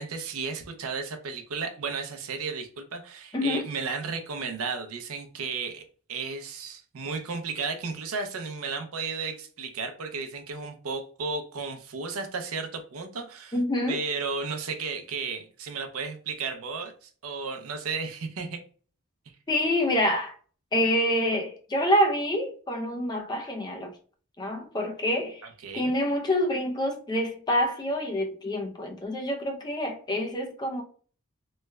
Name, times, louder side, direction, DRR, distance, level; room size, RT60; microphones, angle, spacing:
voice 1, 0.0-13.6 13.9-18.6 25.6-25.9, right 4 dB, 75° right, 0.6 m, -34 dB
voice 2, 3.3-3.7 13.5-14.0 19.5-20.3 20.7-23.9 24.4-25.4 25.7-30.8, equal, 20° left, 0.4 m, -27 dB
3.1 x 2.2 x 3.3 m
head